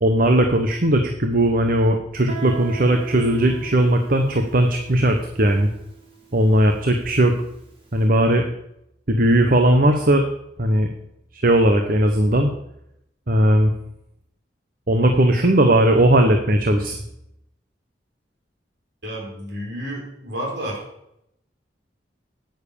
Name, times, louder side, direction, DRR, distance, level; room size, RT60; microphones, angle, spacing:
voice 1, 0.0-5.7 6.3-7.3 7.9-8.4 9.1-10.2 10.6-10.9 11.3-12.5 13.3-13.7 14.9-17.0, right 1 dB, 50° right, 5 dB, 1.1 m, -18 dB
Guitar, 2.3-7.7, right 7 dB, 30° right, 2.8 m, -40 dB
voice 2, 19.0-20.8, equal, 65° right, 0 dB, 4.5 m, -31 dB
9.7 x 9.4 x 6.9 m, 0.80 s
head